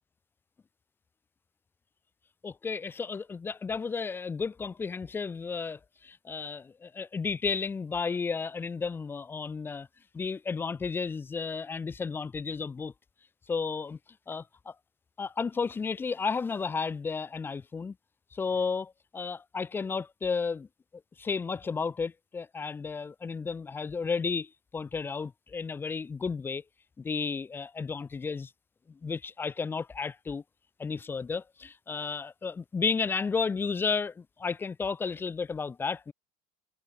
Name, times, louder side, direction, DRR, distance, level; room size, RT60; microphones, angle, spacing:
voice 1, 2.4-9.9 10.1-12.9 13.5-14.0 14.3-14.7 15.2-18.0 18.3-20.7 21.2-26.6 27.0-28.5 28.9-30.4 30.8-36.1, left 5 dB, 20° left, 3.8 m, -33 dB
supercardioid pair, 115°, 11 cm